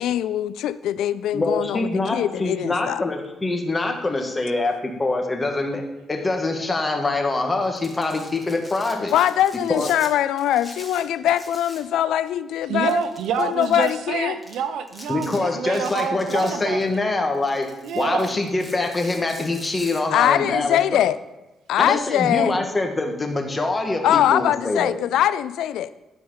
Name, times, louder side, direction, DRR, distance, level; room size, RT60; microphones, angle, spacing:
voice 1, 0.0-3.0 9.1-13.0 13.4-14.4 20.1-21.2 21.7-22.5 24.0-25.9, left 11 dB, 85° left, 15 dB, 0.3 m, -22 dB
voice 2, 1.3-4.7 5.0-9.1 9.7-9.9 15.1-21.1 21.8-24.9, left 2 dB, 25° left, 4 dB, 1.6 m, -24 dB
Domestic sounds home sounds, 7.6-10.1 10.4-11.9 12.2-12.3 12.8-13.9 14.4-14.5 14.9-15.4 15.7-17.0 17.3-20.0, left 1 dB, 5° left, 2.2 m, -43 dB
voice 3, 12.7-16.9 17.8-18.4, right 7 dB, 80° right, 9 dB, 0.9 m, -27 dB
12.5 x 4.6 x 5.6 m, 1.1 s
cardioid pair, 90°, 0 cm